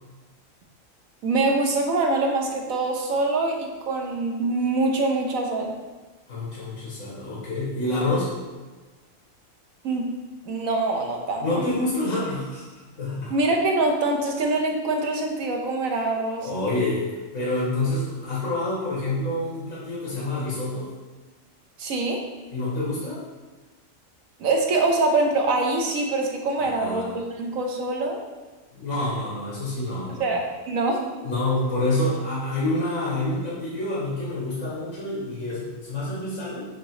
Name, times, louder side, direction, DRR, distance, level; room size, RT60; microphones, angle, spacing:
voice 1, 1.2-5.7 9.8-10.1 10.4-11.4 13.3-16.5 21.8-22.2 24.4-28.2 30.2-30.4 30.7-31.1, right 2 dB, 85° right, 2 dB, 1.4 m, -24 dB
voice 2, 6.3-8.3 11.4-12.6 13.0-13.3 16.4-20.9 22.5-23.2 26.6-27.2 28.7-30.4 31.2-36.7, left 2 dB, 80° left, -7 dB, 2.2 m, -27 dB
8.5 x 3.0 x 4.8 m, 1.3 s
omnidirectional pair, 1.4 m